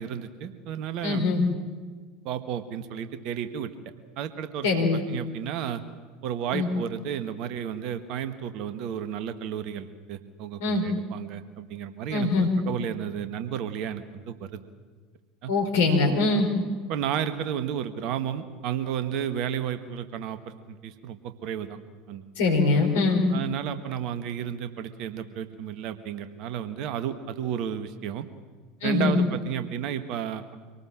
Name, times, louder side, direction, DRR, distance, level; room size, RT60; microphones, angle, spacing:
voice 1, 0.0-1.3 2.2-3.7 4.2-4.7 5.1-5.8 6.2-14.6 15.4-15.5 16.9-21.8 22.1-22.2 23.3-28.3 28.8-30.5, right 9 dB, 50° right, 10 dB, 1.6 m, -32 dB
voice 2, 1.0-1.4 4.6-5.0 6.5-6.7 10.6-10.9 12.1-12.5 15.5-16.5 22.4-23.3 28.8-29.2, left 3 dB, 65° left, 3 dB, 4.8 m, -23 dB
25.0 x 19.0 x 7.6 m, 1.5 s
figure-of-eight pair, 70°, 0 cm